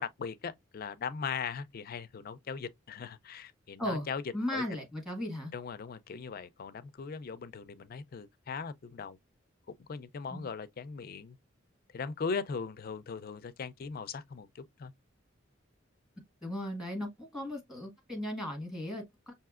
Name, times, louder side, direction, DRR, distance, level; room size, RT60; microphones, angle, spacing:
voice 1, 0.0-4.2 4.5-4.6 5.5-9.2 9.7-11.4 11.9-14.9, left 5 dB, 50° left, 0.4 m, -39 dB
voice 2, 4.3-5.5 10.3-10.5 16.4-19.3, left 1 dB, ahead, 1.5 m, -36 dB
5.7 x 2.7 x 2.4 m
head